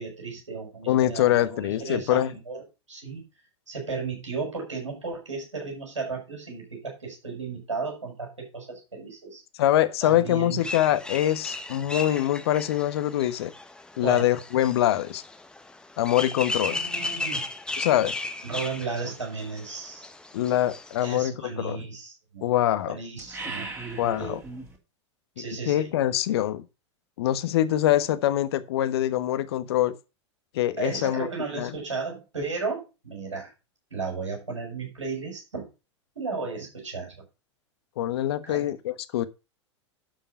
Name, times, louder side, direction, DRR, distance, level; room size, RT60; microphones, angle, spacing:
voice 1, 0.0-2.6 2.9-3.2 3.7-9.4 10.0-10.6 14.0-14.3 16.7-17.4 18.4-20.1 21.0-22.5 22.9-23.7 24.2-24.4 25.4-25.9 30.8-33.5 33.9-35.7 36.1-37.1 38.5-38.7, right 4 dB, 80° right, 6.5 m, -34 dB
voice 2, 0.9-2.3 9.6-13.5 14.0-15.2 16.0-16.8 17.8-18.1 20.3-21.8 22.4-23.0 24.0-24.4 25.7-26.6 27.2-29.9 30.5-31.3 31.5-31.7 38.0-39.3, left 12 dB, 55° left, 1.3 m, -24 dB
sound 1, 10.6-21.2, left 2 dB, 5° left, 1.2 m, -36 dB
sound 2, 23.2-24.8, right 3 dB, 15° right, 3.2 m, -37 dB
12.0 x 5.7 x 5.4 m
figure-of-eight pair, 95°, 15 cm